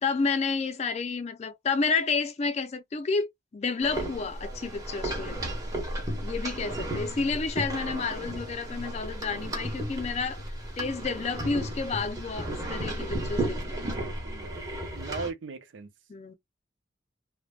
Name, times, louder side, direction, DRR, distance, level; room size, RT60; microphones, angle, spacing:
voice 1, 0.0-3.3 3.5-5.5 6.2-10.4 10.8-13.8 16.1-16.3, left 4 dB, 35° left, 0.4 m, -30 dB
sound 1, 3.8-15.3, right 1 dB, 20° right, 1.0 m, -34 dB
voice 2, 13.7-14.6 14.9-15.9, right 4 dB, 90° right, 0.5 m, -39 dB
3.2 x 2.1 x 2.3 m
head